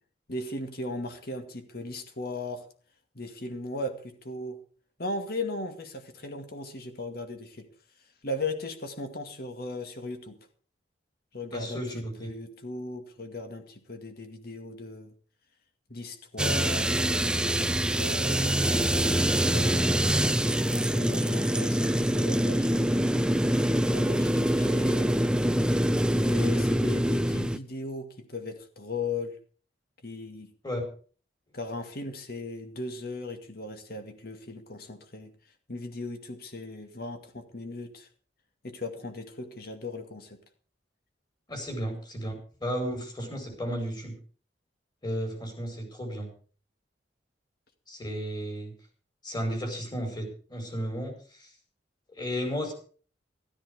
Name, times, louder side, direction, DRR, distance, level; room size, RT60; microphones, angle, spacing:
voice 1, 0.3-2.7 3.1-4.6 5.0-7.7 8.2-10.4 11.3-15.1 15.9-20.0 20.7-23.2 23.9-25.2 26.3-29.4 30.0-30.5 31.5-35.3 35.7-38.1 38.6-40.4, left 2 dB, 60° left, 6 dB, 2.2 m, -37 dB
voice 2, 11.5-12.3 30.6-30.8 41.5-44.1 45.0-46.3 47.9-48.7 49.2-51.5 52.1-52.7, equal, 25° left, 4 dB, 5.0 m, -34 dB
sound 1, 16.4-27.6, right 1 dB, 5° right, 0.5 m, -25 dB
13.0 x 13.0 x 5.0 m, 0.41 s
head